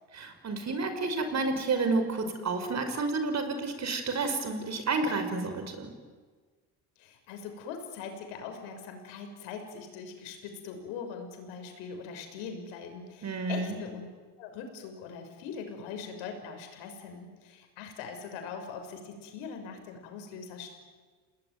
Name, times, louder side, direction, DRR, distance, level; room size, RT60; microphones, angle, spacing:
voice 1, 0.1-5.9 13.2-13.8, right 3 dB, 40° right, 8 dB, 5.7 m, -30 dB
voice 2, 7.0-14.1 14.4-20.7, left 6 dB, 80° left, 5 dB, 6.5 m, -41 dB
28.5 x 19.5 x 9.7 m, 1.5 s
supercardioid pair, 95°, 43 cm